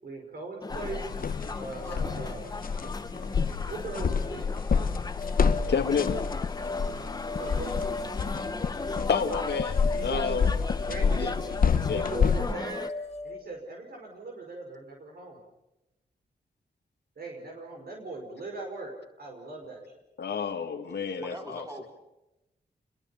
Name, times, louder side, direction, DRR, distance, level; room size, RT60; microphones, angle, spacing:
voice 1, 0.0-1.1 1.6-2.4 3.7-4.5 7.3-7.9 9.9-10.5 10.9-11.6 11.9-12.9 13.2-15.4 17.2-18.9 19.2-19.8, right 3 dB, 65° right, 1 dB, 5.3 m, -39 dB
sound 1, 0.6-12.9, left 3 dB, 25° left, 1.0 m, -38 dB
sound 2, 0.7-12.5, left 6 dB, 55° left, 1.0 m, -29 dB
sound 3, 5.2-13.4, left 3 dB, 40° left, 1.5 m, -38 dB
voice 2, 5.6-6.2 9.1-10.5 11.0-11.3 11.9-12.1 20.2-21.7, left 6 dB, 85° left, 3 dB, 2.0 m, -30 dB
voice 3, 21.2-22.0, equal, 20° right, 1 dB, 4.9 m, -41 dB
28.5 x 22.5 x 7.1 m, 0.94 s
wide cardioid pair, 120°, 17 cm